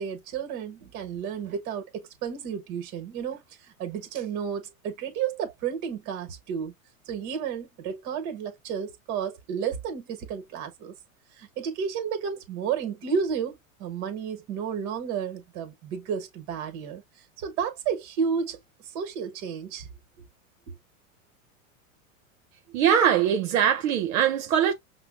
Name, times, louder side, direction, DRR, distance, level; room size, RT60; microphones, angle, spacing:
voice 1, 0.0-6.7 7.1-10.9 11.4-17.0 17.4-18.6 18.9-19.9 20.7-20.8, right 7 dB, 45° right, 1.2 m, -32 dB
voice 2, 22.7-24.7, right 9 dB, 75° right, 0.7 m, -22 dB
5.6 x 2.1 x 2.4 m
hypercardioid pair, 115°, 41 cm